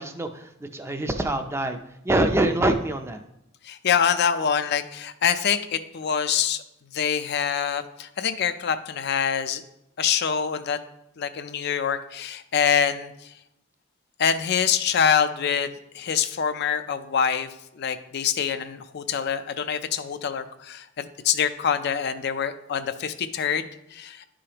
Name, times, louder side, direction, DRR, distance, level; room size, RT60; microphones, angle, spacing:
voice 1, 0.0-1.8 2.0-3.2, right 1 dB, 15° right, 6 dB, 0.5 m, -25 dB
voice 2, 3.6-6.6 6.9-9.6 10.0-10.8 11.2-13.1 14.2-17.5 17.7-24.3, left 7 dB, 55° left, 10 dB, 0.4 m, -25 dB
11.0 x 5.0 x 2.9 m, 0.82 s
head